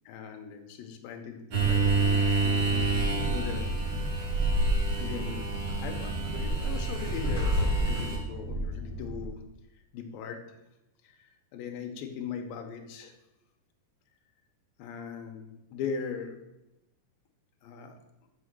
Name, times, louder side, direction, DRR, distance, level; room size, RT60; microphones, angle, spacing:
voice 1, 0.1-3.7 5.0-5.5 5.8-9.4 9.9-10.6 11.0-13.1 14.8-16.4 17.6-18.0, left 6 dB, 80° left, 4 dB, 2.1 m, -39 dB
sound 1, 1.5-8.2, right 3 dB, 45° right, 2.4 m, -27 dB
Train, 2.4-9.3, right 1 dB, 75° right, 1.4 m, -37 dB
6.2 x 5.9 x 6.3 m, 0.93 s
omnidirectional pair, 5.0 m